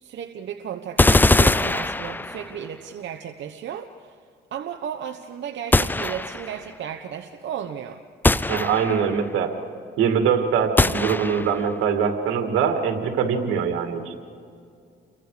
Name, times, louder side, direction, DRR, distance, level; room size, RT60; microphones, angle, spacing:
voice 1, 0.0-4.2 4.5-8.0, right 9 dB, 70° right, 6 dB, 1.1 m, -34 dB
sound 1, 1.0-2.6 5.7-6.6 8.2-9.2 10.8-11.6, left 2 dB, 10° left, 0.5 m, -21 dB
voice 2, 8.5-9.5 10.0-14.2, right 7 dB, 85° right, 5 dB, 2.6 m, -23 dB
29.5 x 23.5 x 5.1 m, 2.4 s
cardioid pair, 90°, 20 cm